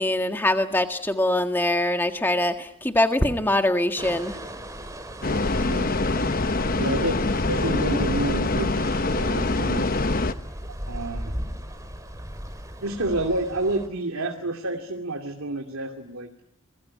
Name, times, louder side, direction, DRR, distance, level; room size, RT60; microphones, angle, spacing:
voice 1, 0.0-4.4, left 1 dB, 10° left, 6 dB, 1.7 m, -23 dB
sound 1, 4.0-13.9, equal, 15° right, 3.4 m, -37 dB
sound 2, 5.2-10.3, left 2 dB, 40° left, 1.0 m, -24 dB
voice 2, 6.8-7.2 7.5-10.0 10.9-11.6 12.8-16.3, right 2 dB, 75° right, 4 dB, 2.6 m, -29 dB
27.5 x 21.5 x 9.6 m, 0.83 s
head